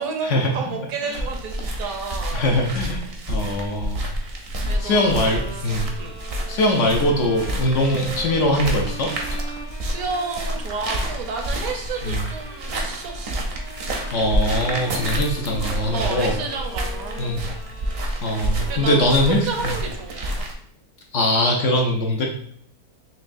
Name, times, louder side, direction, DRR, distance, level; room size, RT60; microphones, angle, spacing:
voice 1, 0.0-2.5 4.6-5.5 6.0-6.2 9.5-13.4 15.9-17.6 18.7-20.5, right 4 dB, 70° right, 3 dB, 1.1 m, -31 dB
sound 1, 1.1-20.5, right 1 dB, 55° right, 0.8 m, -29 dB
voice 2, 2.3-3.0 3.3-4.0 4.8-5.9 6.5-9.4 12.1-12.2 14.1-16.3 17.2-17.4 18.2-19.4 21.1-22.2, left 1 dB, 65° left, 0 dB, 0.8 m, -21 dB
Bowed string instrument, 4.6-19.9, right 1 dB, 25° left, 0.6 m, -41 dB
4.5 x 3.1 x 2.5 m, 0.64 s
omnidirectional pair, 1.6 m